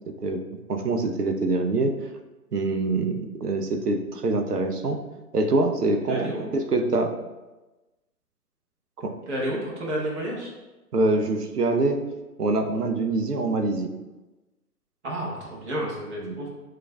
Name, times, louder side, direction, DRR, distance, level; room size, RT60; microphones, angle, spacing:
voice 1, 0.7-2.0 2.5-5.0 5.3-7.1 9.0-9.1 10.9-12.0 12.4-13.9 16.2-16.4, right 2 dB, 80° right, 6 dB, 0.7 m, -24 dB
voice 2, 9.3-10.5 15.0-16.5, equal, 50° right, -3 dB, 1.2 m, -30 dB
7.5 x 2.5 x 2.3 m, 1.1 s
figure-of-eight pair, 130°, 46 cm